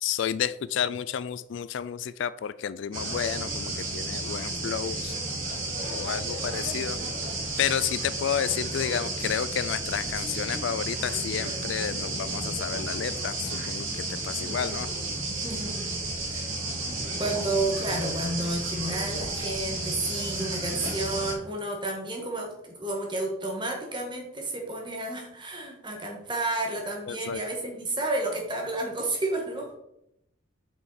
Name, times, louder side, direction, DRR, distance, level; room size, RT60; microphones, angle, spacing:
voice 1, 0.0-5.1 5.8-7.0 7.6-14.9 27.1-27.4, left 9 dB, 60° left, 15 dB, 0.3 m, -31 dB
sound 1, 2.9-21.3, right 2 dB, 80° right, 1.8 m, -32 dB
voice 2, 15.3-15.9 16.3-16.5 17.2-29.8, right 2 dB, 25° right, 1 dB, 1.7 m, -31 dB
7.7 x 5.7 x 4.2 m, 0.80 s
head